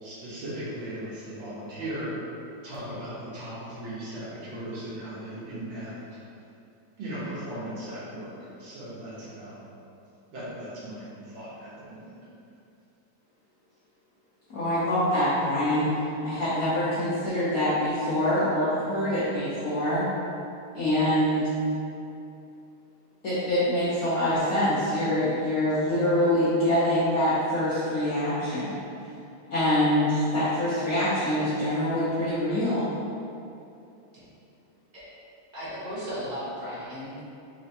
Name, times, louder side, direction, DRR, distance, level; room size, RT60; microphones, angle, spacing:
voice 1, 0.0-2.2 2.6-6.0 7.0-9.6 10.3-12.1, right 1 dB, 70° right, -9 dB, 1.8 m, -37 dB
voice 2, 14.5-15.9 16.2-20.0 20.7-21.5 23.2-28.8 29.5-32.9, left 1 dB, 70° left, -11 dB, 0.8 m, -25 dB
voice 3, 35.5-37.2, equal, 30° right, -11 dB, 0.8 m, -35 dB
4.4 x 3.1 x 2.7 m, 2.6 s
omnidirectional pair, 2.4 m